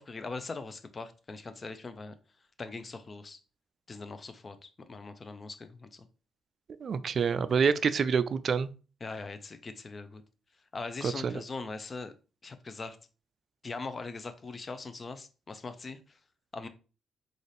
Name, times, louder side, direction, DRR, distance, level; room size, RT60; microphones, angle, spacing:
voice 1, 0.0-2.1 2.6-3.4 3.9-6.1 9.0-10.2 10.7-12.1 12.4-13.0 13.6-16.0 16.5-16.7, left 3 dB, 30° left, 0.5 m, -41 dB
voice 2, 6.8-8.7 11.0-11.4, right 6 dB, 50° right, 0.3 m, -27 dB
3.9 x 2.5 x 3.3 m
cardioid pair, 90°, 0 cm